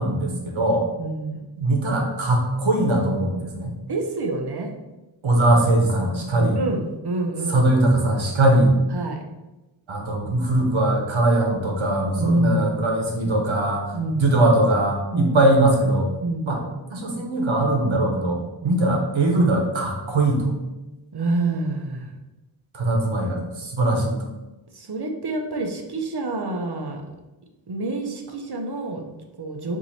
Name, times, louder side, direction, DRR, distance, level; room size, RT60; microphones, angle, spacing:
voice 1, 0.0-0.9 1.6-3.8 5.2-6.6 7.5-8.8 9.9-16.1 16.4-16.6 16.9-20.5 22.7-24.2, right 1 dB, 80° right, 1 dB, 1.0 m, -21 dB
voice 2, 1.0-1.4 3.9-4.7 6.3-7.6 8.9-9.2 12.2-12.6 13.9-14.2 15.1-15.3 16.2-16.5 18.6-18.8 21.1-22.2 24.7-27.0 27.7-29.8, right 2 dB, 55° right, 3 dB, 0.7 m, -27 dB
4.5 x 2.7 x 4.1 m, 1.1 s
wide cardioid pair, 90°, 46 cm